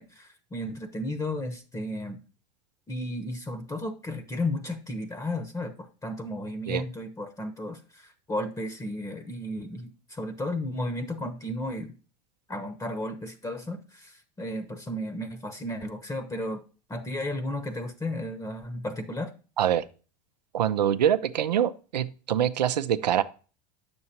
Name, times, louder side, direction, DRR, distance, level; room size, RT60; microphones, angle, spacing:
voice 1, 0.0-2.2 2.9-11.9 12.5-16.6 16.9-19.3, left 1 dB, 15° left, 0.9 m, -34 dB
voice 2, 20.5-23.2, right 10 dB, 85° right, 0.6 m, -24 dB
9.4 x 6.9 x 2.8 m
hypercardioid pair, 90°, 21 cm